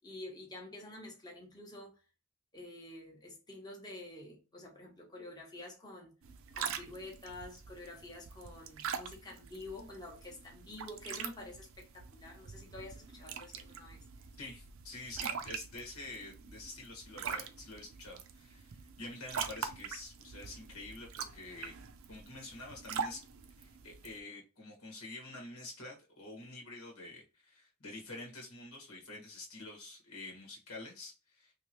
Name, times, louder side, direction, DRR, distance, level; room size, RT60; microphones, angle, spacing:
voice 1, 0.0-2.0 2.5-6.1 6.5-14.0, left 2 dB, 20° left, 0.9 m, -48 dB
sound 1, 6.2-24.2, right 6 dB, 65° right, 0.5 m, -44 dB
voice 2, 14.4-21.7 22.1-23.3 23.6-31.5, left 2 dB, 85° left, 1.5 m, -48 dB
3.3 x 2.9 x 2.9 m
head